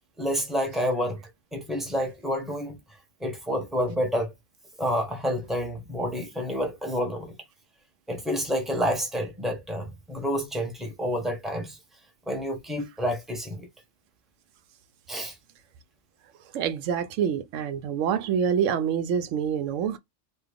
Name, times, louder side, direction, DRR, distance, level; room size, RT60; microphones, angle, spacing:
voice 1, 0.2-1.2 1.5-2.8 3.2-4.3 4.8-7.3 8.1-11.8 12.3-13.7 15.1-15.4, equal, ahead, 1.1 m, -29 dB
voice 2, 16.5-20.0, right 8 dB, 85° right, 0.9 m, -26 dB
3.8 x 2.5 x 3.3 m
omnidirectional pair, 1.3 m